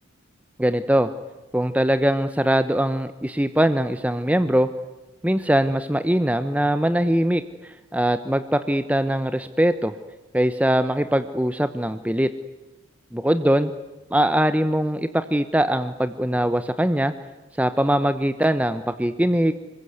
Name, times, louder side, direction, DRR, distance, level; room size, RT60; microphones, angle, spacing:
voice 1, 0.6-1.1 1.5-4.7 5.2-9.9 10.3-12.3 13.1-13.7 14.1-17.1 17.6-19.5, right 1 dB, 5° right, 11 dB, 0.8 m, -21 dB
26.5 x 22.5 x 9.5 m, 1.1 s
head